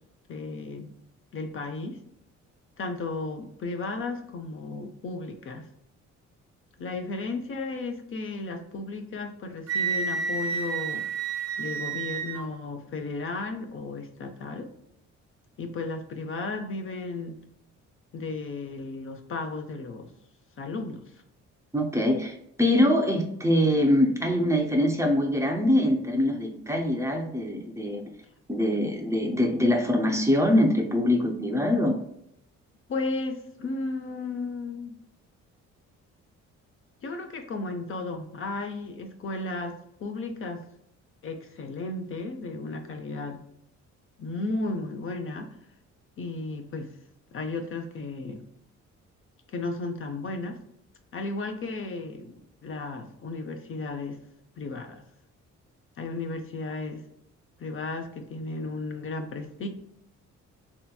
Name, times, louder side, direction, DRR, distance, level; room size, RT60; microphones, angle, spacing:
voice 1, 0.3-1.0 1.3-2.0 2.8-5.7 6.8-11.1 11.6-14.7 15.6-17.4 18.1-20.1 20.6-21.1 32.9-35.0 37.0-40.6 41.2-43.4 44.2-45.6 46.2-46.9 47.3-48.4 49.5-50.6 51.1-54.2 54.6-55.0 56.0-57.0 57.6-59.7, left 3 dB, 45° left, 5 dB, 0.5 m, -34 dB
Wind instrument woodwind instrument, 9.7-12.5, right 5 dB, 55° right, 0.5 m, -30 dB
voice 2, 21.7-22.3 22.6-28.0 28.5-32.0, left 1 dB, 10° right, 1 dB, 0.5 m, -23 dB
3.3 x 2.8 x 2.2 m, 0.74 s
cardioid pair, 90°, 30 cm